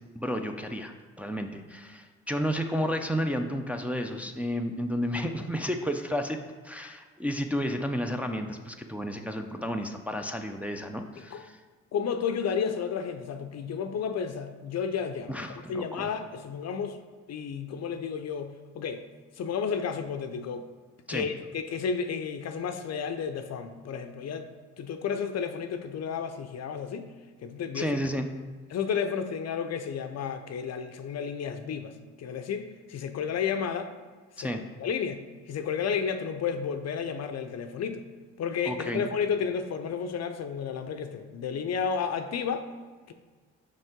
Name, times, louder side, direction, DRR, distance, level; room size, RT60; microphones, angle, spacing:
voice 1, 0.2-6.4 6.6-11.6 15.3-16.1 21.1-21.3 27.7-28.3 34.4-34.6 38.7-39.0, equal, 5° right, 3 dB, 0.5 m, -32 dB
voice 2, 11.9-17.0 17.3-19.0 19.4-20.7 21.1-24.5 24.8-27.1 27.4-27.9 28.7-33.9 34.4-38.0 38.4-42.6 43.1-43.2, left 6 dB, 50° left, 7 dB, 0.6 m, -32 dB
5.5 x 5.3 x 3.7 m, 1.5 s
hypercardioid pair, 55°, 34 cm